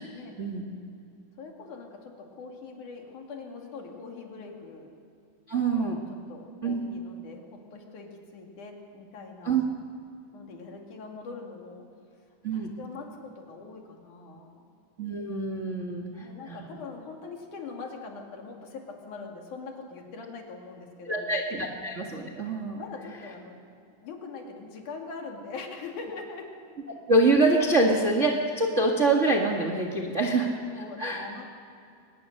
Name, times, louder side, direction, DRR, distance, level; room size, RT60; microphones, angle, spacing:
voice 1, 1.4-4.9 5.7-5.9 6.3-9.6 10.3-11.9 12.5-14.7 16.2-21.3 22.8-23.6 23.9-26.5 30.7-31.5, left 4 dB, 55° left, 1 dB, 3.6 m, -42 dB
voice 2, 5.5-6.0 6.6-6.8 9.4-9.6 12.4-12.7 15.0-16.7 21.0-22.8 27.1-30.5 31.0-31.3, right 2 dB, 80° right, 1 dB, 0.6 m, -25 dB
24.0 x 20.0 x 6.6 m, 2.6 s
omnidirectional pair, 4.5 m